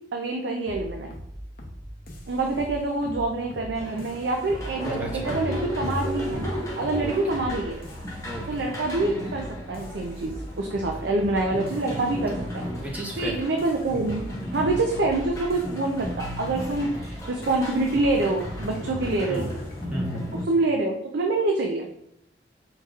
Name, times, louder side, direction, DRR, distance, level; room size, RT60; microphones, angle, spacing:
voice 1, 0.1-1.1 2.3-7.8 8.5-12.6 13.2-14.2 14.5-19.5 20.5-21.9, right 2 dB, 80° right, 1 dB, 0.5 m, -26 dB
sound 1, 0.6-19.9, equal, 55° left, 0.8 m, -41 dB
sound 2, 3.7-20.4, equal, 20° left, 0.9 m, -34 dB
voice 2, 5.0-5.3 7.0-7.4 8.2-8.4 12.7-13.4 15.6-15.8 16.8-16.9 19.3-19.5 19.9-20.3, right 1 dB, 10° right, -2 dB, 0.9 m, -35 dB
4.7 x 4.3 x 2.4 m, 0.75 s
head